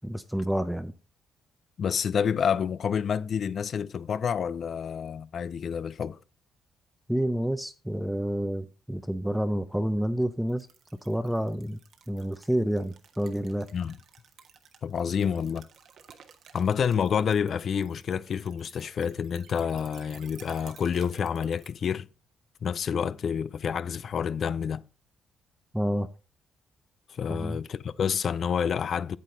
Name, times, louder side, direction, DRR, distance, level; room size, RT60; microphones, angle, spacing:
voice 1, 0.0-0.9 7.1-10.7 11.0-11.8 12.1-13.7 25.7-26.1 27.3-27.6, equal, ahead, 0.6 m, -29 dB
voice 2, 1.8-6.2 13.7-14.0 14.8-15.7 16.5-22.1 22.6-24.8 27.1-29.2, left 7 dB, 55° left, 0.5 m, -28 dB
sound 1, 10.5-21.7, right 7 dB, 65° right, 1.3 m, -55 dB
8.6 x 8.1 x 3.8 m
cardioid pair, 90°, 0 cm